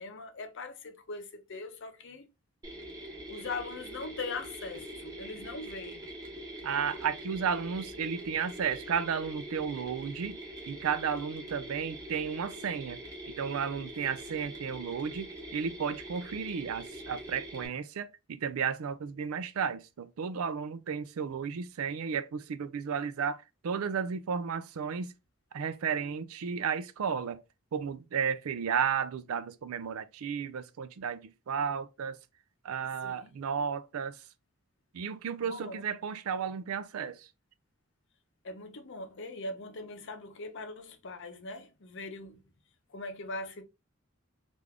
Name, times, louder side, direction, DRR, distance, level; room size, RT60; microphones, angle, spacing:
voice 1, 0.0-2.3 3.3-6.1 14.3-14.5 33.0-33.4 35.4-35.8 38.4-42.4 42.9-43.6, left 3 dB, 55° left, 0.6 m, -41 dB
Mechanisms, 2.6-17.7, right 1 dB, 15° right, 0.9 m, -44 dB
voice 2, 6.6-10.4 10.7-13.0 13.4-25.1 25.5-27.4 27.7-32.2 32.6-34.2 34.9-37.3, right 6 dB, 75° right, 0.4 m, -33 dB
3.5 x 2.5 x 3.3 m
head